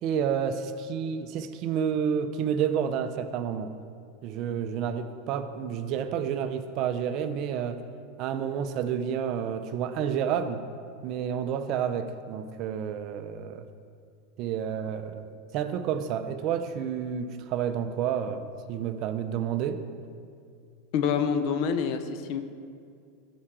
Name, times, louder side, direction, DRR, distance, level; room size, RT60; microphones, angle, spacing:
voice 1, 0.0-3.7 4.2-7.8 8.2-10.6 11.0-13.6 14.4-15.3 15.5-19.8, right 8 dB, 45° right, 9 dB, 0.6 m, -30 dB
voice 2, 20.9-22.4, left 6 dB, 55° left, 9 dB, 0.8 m, -26 dB
13.5 x 5.0 x 6.0 m, 2.3 s
supercardioid pair, 140°, 0 cm